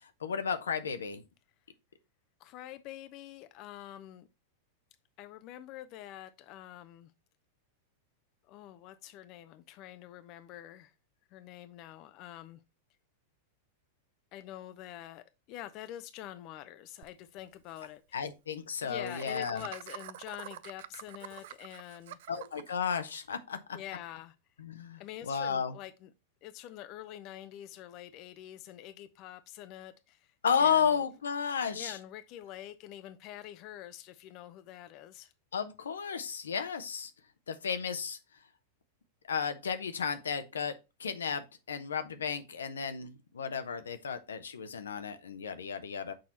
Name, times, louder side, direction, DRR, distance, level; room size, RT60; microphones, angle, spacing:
voice 1, 0.2-1.2 18.1-19.6 22.3-23.6 24.6-25.7 30.4-32.0 35.5-37.1 37.5-38.2 39.3-40.7 41.0-46.1, left 7 dB, 80° left, 0.8 m, -33 dB
voice 2, 2.4-4.3 5.2-7.1 8.4-10.9 11.3-12.6 14.3-18.2 18.8-22.2 23.7-24.4 25.0-26.1 26.4-31.0 31.7-35.3, left 13 dB, 45° left, 0.5 m, -46 dB
Laughter, 17.0-17.1 17.4-17.5 17.7-17.9 19.1-22.7, right 13 dB, 65° right, 0.4 m, -46 dB
6.3 x 4.3 x 4.1 m
hypercardioid pair, 95°, 0 cm